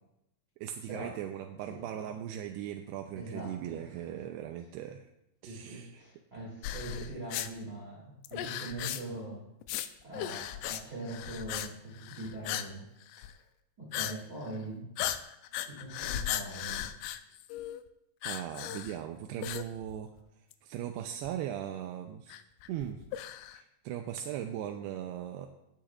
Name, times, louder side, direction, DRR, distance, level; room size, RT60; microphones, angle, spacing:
voice 1, 0.6-5.1 5.4-6.0 18.2-20.1 20.6-22.4 22.7-23.0 23.5-25.5, right 10 dB, 85° right, 4 dB, 2.6 m, -39 dB
voice 2, 1.7-2.0 3.1-4.2 5.4-9.4 10.0-12.9 13.2-13.3 13.8-14.9 15.6-16.9, right 2 dB, 30° right, -6 dB, 2.3 m, -42 dB
sound 1, 6.6-7.5 8.2-9.2 9.6-9.9 10.1-10.8 11.1-11.7 11.9-12.7 13.0-13.3 13.9-14.1 14.5-14.6 15.0-17.8 18.2-19.0 19.4-20.2 20.5-20.6 21.3-21.4 22.3-23.6, left 12 dB, 85° left, 2.7 m, -37 dB
16.5 x 8.9 x 2.4 m, 0.85 s
omnidirectional pair, 4.7 m